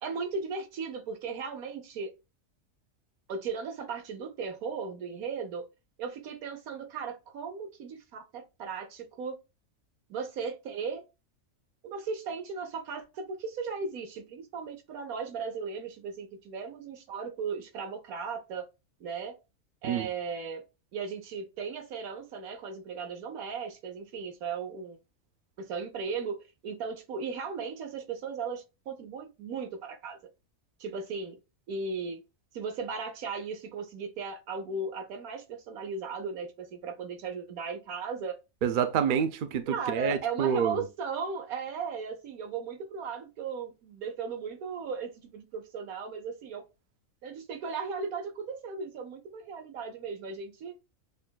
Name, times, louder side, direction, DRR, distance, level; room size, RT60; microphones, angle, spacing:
voice 1, 0.0-2.1 3.3-5.7 6.0-9.4 10.1-11.0 11.8-18.7 19.0-19.3 19.8-20.6 20.9-25.0 25.6-26.4 26.6-30.2 30.8-31.4 31.7-32.2 32.5-38.4 39.7-46.6 47.2-50.8, right 5 dB, 90° right, 1.3 m, -36 dB
voice 2, 38.6-40.8, right 8 dB, 60° right, 0.5 m, -27 dB
6.6 x 2.2 x 2.3 m
omnidirectional pair, 1.5 m